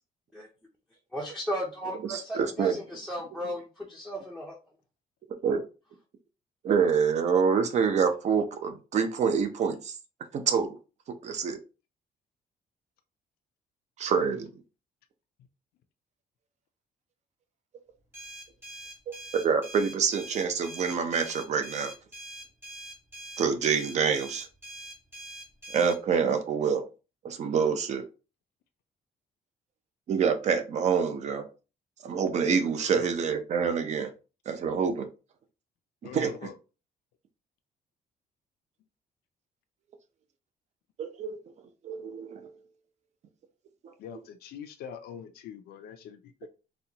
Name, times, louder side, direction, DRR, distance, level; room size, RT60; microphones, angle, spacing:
voice 1, 1.1-4.5, equal, ahead, 0.6 m, -35 dB
voice 2, 2.0-2.8 3.4-3.5 5.4-5.6 6.6-9.9 10.3-10.8 11.2-11.6 14.0-14.5 19.3-21.9 23.4-24.5 25.7-26.8 27.2-28.0 30.1-31.5 32.0-34.1 34.5-35.1 36.1-36.3 41.0-41.4 41.8-42.5, right 6 dB, 45° right, 0.6 m, -26 dB
sound 1, 18.1-26.0, right 1 dB, 15° right, 1.2 m, -44 dB
voice 3, 32.8-33.1 36.0-36.6 44.0-46.5, left 8 dB, 80° left, 0.5 m, -43 dB
4.1 x 2.3 x 2.8 m
cardioid pair, 155°, 16 cm